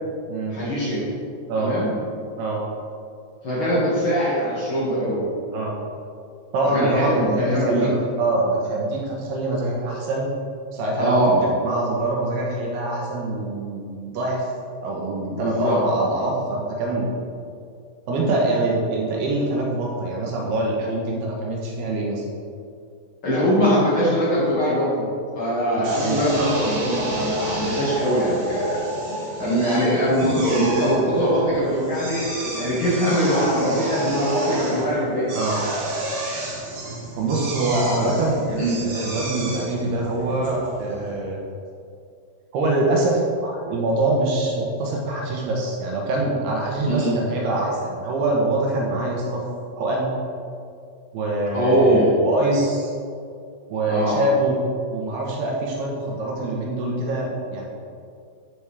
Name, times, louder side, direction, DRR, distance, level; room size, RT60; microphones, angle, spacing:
voice 1, 0.5-1.0 1.5-1.9 3.4-5.2 6.7-7.9 11.0-11.5 15.3-15.8 23.2-25.1 25.3-28.9 29.4-35.4 37.9-38.1 38.6-38.7 46.9-47.1 51.5-52.2 53.9-54.2, equal, 40° left, -8 dB, 2.0 m, -22 dB
voice 2, 6.5-7.9 8.2-10.3 10.7-11.2 11.6-14.5 14.8-17.1 18.1-22.2 26.0-26.2 35.3-35.6 37.2-41.4 42.5-49.4 49.8-50.1 51.1-52.9 53.7-54.6 54.9-57.7, right 2 dB, 75° right, -2 dB, 3.0 m, -24 dB
Drill, 25.8-41.1, right 2 dB, 55° right, 2.4 m, -30 dB
13.5 x 5.2 x 3.5 m, 2.4 s
omnidirectional pair, 5.0 m